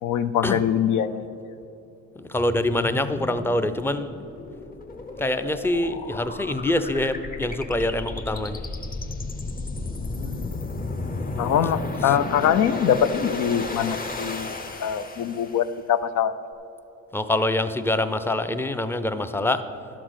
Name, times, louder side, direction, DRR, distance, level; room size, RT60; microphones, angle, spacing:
voice 1, 0.0-1.3 10.2-10.6 11.4-14.5 14.8-16.3, left 9 dB, 75° left, 12 dB, 0.6 m, -23 dB
voice 2, 2.2-4.3 5.2-8.6 12.0-12.1 17.1-19.7, left 1 dB, 10° left, 10 dB, 0.5 m, -25 dB
sound 1, 2.4-15.8, left 2 dB, 30° left, 0.9 m, -33 dB
11.5 x 6.0 x 6.4 m, 2.8 s
cardioid pair, 90°, 30 cm